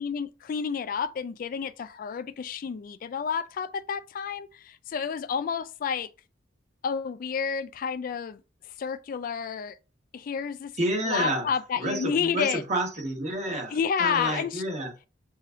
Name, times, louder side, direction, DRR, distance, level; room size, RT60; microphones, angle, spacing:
voice 1, 0.0-6.1 6.8-8.4 8.8-9.8 10.1-10.7 11.0-12.6 13.7-14.6, left 6 dB, 45° left, 0.3 m, -30 dB
voice 2, 10.8-11.5 11.8-14.9, right 1 dB, 40° right, 1.2 m, -29 dB
7.3 x 2.6 x 2.5 m
head